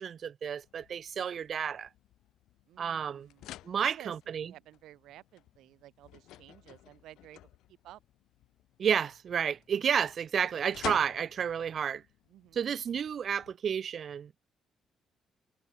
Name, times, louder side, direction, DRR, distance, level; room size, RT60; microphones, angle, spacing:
voice 1, 0.0-1.9 2.8-3.3 3.6-4.5 8.8-12.0 12.5-14.5, right 8 dB, 55° right, 0.7 m, -31 dB
sound 1, 0.6-13.5, left 14 dB, 85° left, 3.3 m, -50 dB
voice 2, 2.7-8.0 12.3-12.6, right 14 dB, 85° right, 1.6 m, -53 dB
cardioid pair, 90°, 0 cm